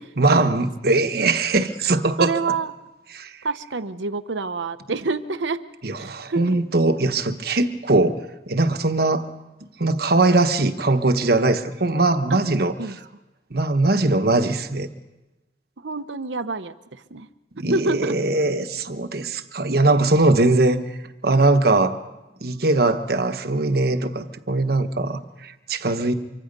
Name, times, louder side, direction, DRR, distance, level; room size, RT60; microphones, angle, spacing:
voice 1, 0.2-2.5 3.1-3.4 5.8-8.2 8.5-9.3 9.8-13.0 13.5-14.9 17.6-20.8 21.2-22.0 22.4-26.2, right 2 dB, 55° right, 9 dB, 1.2 m, -21 dB
voice 2, 2.2-2.7 3.4-5.6 6.0-6.6 12.3-12.4 12.8-13.0 15.8-17.3 17.7-18.2, right 3 dB, 85° right, 12 dB, 0.9 m, -27 dB
25.5 x 24.5 x 5.4 m, 1.0 s
head